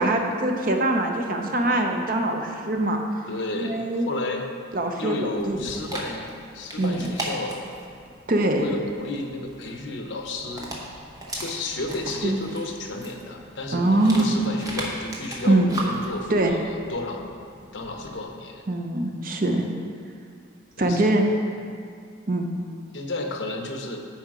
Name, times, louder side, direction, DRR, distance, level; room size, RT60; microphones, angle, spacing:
voice 1, 0.0-3.0 3.6-4.1 4.7-5.2 5.5-5.6 6.8-7.1 8.3-8.7 12.2-12.4 13.7-14.4 15.4-15.8 16.3-16.5 18.7-19.6 20.8-21.3 22.3-22.5, right 2 dB, 45° right, 3 dB, 0.7 m, -23 dB
voice 2, 3.3-4.5 5.0-7.6 8.5-10.7 11.3-18.6 20.8-21.1 22.9-24.1, left 2 dB, 70° left, 3 dB, 0.9 m, -32 dB
Dog, 5.3-18.2, right 1 dB, 20° right, 0.9 m, -38 dB
10.5 x 4.3 x 4.9 m, 2.2 s
head